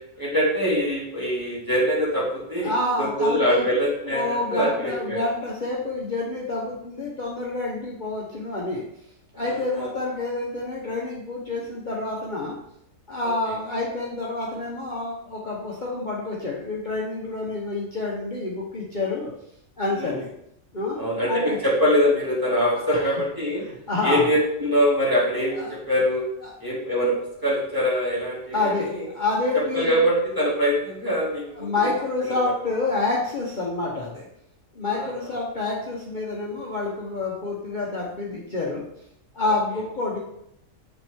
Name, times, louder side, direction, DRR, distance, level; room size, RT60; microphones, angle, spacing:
voice 1, 0.2-2.7 3.0-5.2 9.3-9.9 13.2-13.6 20.0-20.2 21.0-23.6 24.0-26.2 26.6-27.1 27.4-29.1 29.7-31.4 32.2-32.4 34.9-35.1 39.4-39.5, equal, 15° right, -6 dB, 2.6 m, -23 dB
voice 2, 2.6-3.7 4.1-8.9 9.3-12.6 13.1-19.3 19.8-20.3 20.7-21.6 22.8-23.1 23.6-24.3 25.5-25.7 26.4-26.5 28.5-29.9 31.6-34.3 34.7-38.8 39.3-40.2, left 2 dB, 35° left, -4 dB, 1.2 m, -28 dB
7.7 x 5.7 x 3.6 m, 0.76 s
omnidirectional pair, 1.4 m